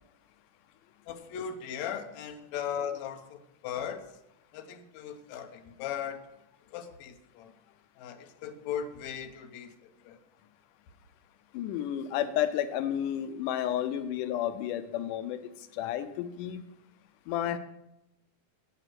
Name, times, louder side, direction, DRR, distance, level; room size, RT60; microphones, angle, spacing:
voice 1, 1.1-4.1 4.5-6.3 6.7-7.5 8.0-10.2, left 8 dB, 70° left, 6 dB, 2.1 m, -38 dB
voice 2, 11.5-16.6 17.3-17.6, left 10 dB, 85° left, 11 dB, 2.2 m, -31 dB
9.9 x 8.8 x 6.1 m, 0.85 s
omnidirectional pair, 3.6 m